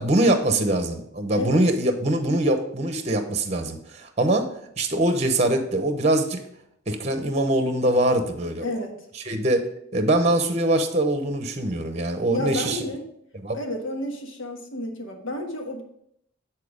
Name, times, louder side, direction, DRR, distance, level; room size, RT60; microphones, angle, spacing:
voice 1, 0.0-4.5 4.8-6.4 6.9-8.7 9.3-9.6 9.9-12.8 13.4-13.6, right 1 dB, 35° right, 7 dB, 0.8 m, -23 dB
voice 2, 1.3-1.6 8.6-9.1 12.3-13.1 13.5-15.8, left 1 dB, 70° left, 2 dB, 1.4 m, -31 dB
9.2 x 4.4 x 5.0 m, 0.72 s
head